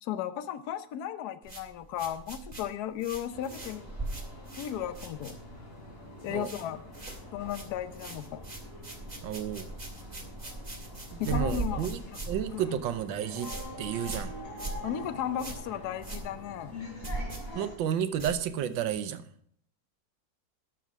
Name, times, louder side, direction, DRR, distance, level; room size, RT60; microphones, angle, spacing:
voice 1, 0.0-3.9 4.6-5.4 6.2-6.8 7.3-8.4 11.2-12.2 12.5-12.8 14.8-16.8, left 10 dB, 65° left, 12 dB, 1.2 m, -35 dB
sound 1, 1.4-5.8 6.0-6.7 6.9-18.9, right 2 dB, 20° right, 2.1 m, -40 dB
sound 2, 3.3-17.8, left 1 dB, 45° left, 3.8 m, -45 dB
voice 2, 9.2-9.7 11.1-12.0 12.3-13.5 13.8-14.3 17.5-19.2, right 9 dB, 85° right, 11 dB, 1.5 m, -31 dB
12.0 x 6.8 x 6.0 m, 0.66 s
omnidirectional pair, 2.0 m